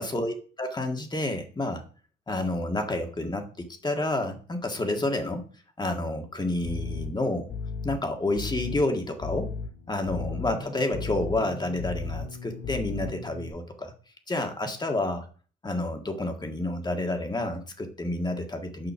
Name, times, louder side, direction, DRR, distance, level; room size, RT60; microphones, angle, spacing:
voice 1, 0.0-1.8 2.3-5.4 5.8-7.5 7.8-9.6 9.9-13.9 14.3-15.3 15.6-18.9, left 2 dB, 20° left, 4 dB, 1.7 m, -29 dB
sound 1, 6.6-13.5, left 5 dB, 55° left, 1.7 m, -36 dB
7.0 x 5.4 x 5.8 m, 0.41 s
cardioid pair, 90°, 20 cm